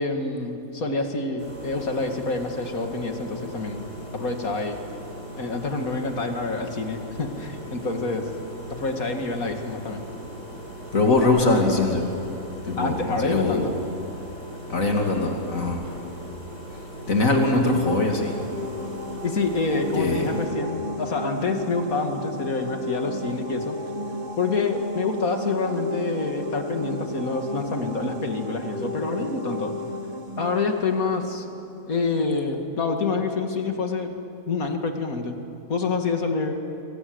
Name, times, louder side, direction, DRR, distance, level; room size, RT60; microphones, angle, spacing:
voice 1, 0.0-3.8 4.1-4.8 5.4-8.3 8.7-10.0 12.8-13.7 19.2-23.8 24.4-29.7 30.4-31.5 31.9-34.1 34.5-35.4 35.7-36.6, left 3 dB, 90° left, 4 dB, 2.7 m, -27 dB
sound 1, 1.4-20.5, equal, 60° right, 5.5 m, -39 dB
voice 2, 10.9-12.1 12.7-13.7 14.7-15.8 17.1-18.3 20.0-20.2, left 2 dB, 75° left, 1 dB, 3.0 m, -22 dB
sound 2, 17.4-32.1, left 1 dB, 35° right, 1.5 m, -34 dB
29.0 x 23.5 x 8.0 m, 3.0 s
omnidirectional pair, 1.4 m